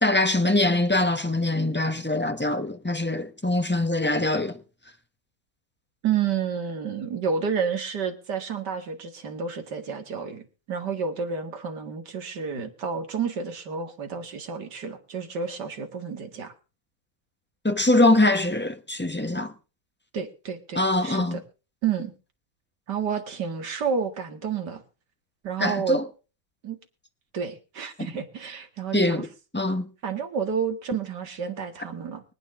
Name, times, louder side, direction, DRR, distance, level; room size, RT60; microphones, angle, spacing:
voice 1, 0.0-4.6 17.6-19.5 20.7-21.4 25.6-26.0 28.9-29.3 29.5-29.9, left 2 dB, 10° left, 0.5 m, -23 dB
voice 2, 6.0-16.5 20.1-21.4 21.8-22.1 22.9-24.8 25.4-26.0 26.6-26.8 27.3-29.3 30.0-32.2, right 6 dB, 55° right, 2.4 m, -30 dB
24.0 x 9.3 x 3.6 m
omnidirectional pair, 2.2 m